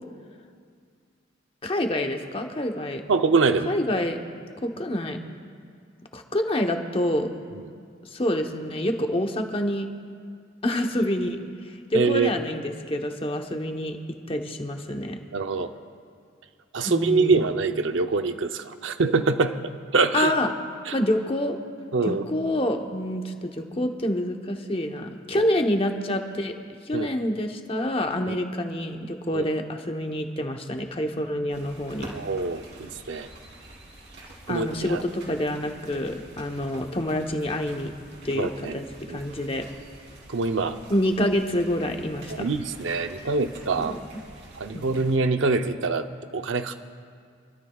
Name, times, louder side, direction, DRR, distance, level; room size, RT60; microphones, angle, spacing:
voice 1, 1.6-3.0 3.7-4.2 4.6-5.2 6.1-7.3 8.1-9.9 10.6-11.4 11.9-14.0 14.3-15.2 16.8-17.4 20.1-20.5 20.9-21.6 22.0-26.5 26.9-32.1 34.5-37.9 38.2-39.6 40.9-42.3 43.1-43.3 43.8-44.0 44.7-44.9, left 1 dB, 30° left, 4 dB, 1.0 m, -27 dB
voice 2, 3.1-3.7 7.5-7.6 11.9-12.3 15.3-15.7 16.7-19.6 19.9-20.3 20.9-21.0 21.9-22.2 25.3-25.5 26.9-27.1 28.3-28.4 29.3-29.5 32.1-33.3 34.5-35.0 38.3-38.8 39.1-39.2 40.3-40.8 42.3-44.0 44.6-46.7, right 4 dB, 80° right, 8 dB, 0.7 m, -24 dB
sound 1, 31.5-45.2, right 1 dB, 60° right, 3.6 m, -47 dB
28.0 x 13.0 x 2.4 m, 2.2 s
head